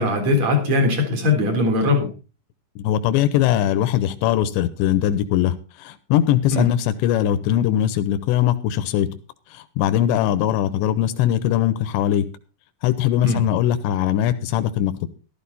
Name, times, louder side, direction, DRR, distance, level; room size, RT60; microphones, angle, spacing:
voice 1, 0.0-2.1 6.5-6.7 13.2-13.4, left 2 dB, 40° right, 4 dB, 4.6 m, -20 dB
voice 2, 2.8-9.1 9.5-12.3 12.8-15.1, left 11 dB, 85° left, 11 dB, 3.2 m, -21 dB
13.5 x 13.0 x 4.1 m, 0.33 s
omnidirectional pair, 5.0 m